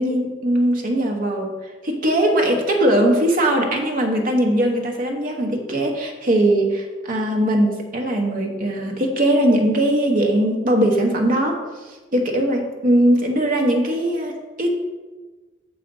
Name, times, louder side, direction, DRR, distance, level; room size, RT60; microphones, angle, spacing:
voice 1, 0.0-1.6 1.8-14.7, right 1 dB, 40° right, 1 dB, 1.0 m, -20 dB
6.4 x 4.0 x 5.3 m, 1.3 s
head